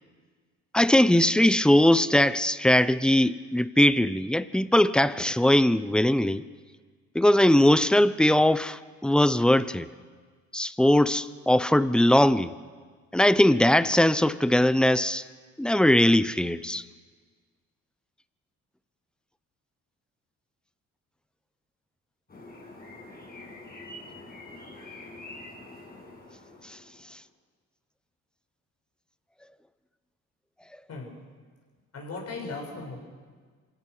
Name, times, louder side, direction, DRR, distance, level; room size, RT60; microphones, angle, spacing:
voice 1, 0.7-6.4 7.1-9.9 10.5-12.5 13.1-15.2 15.6-16.8 26.6-26.8, left 1 dB, 5° left, 15 dB, 0.7 m, -21 dB
sound 1, 22.3-27.1, left 2 dB, 30° left, 6.8 m, -45 dB
voice 2, 31.9-33.0, left 3 dB, 55° left, -1 dB, 7.3 m, -37 dB
27.0 x 17.0 x 6.6 m, 1.5 s
cardioid pair, 90°, 30 cm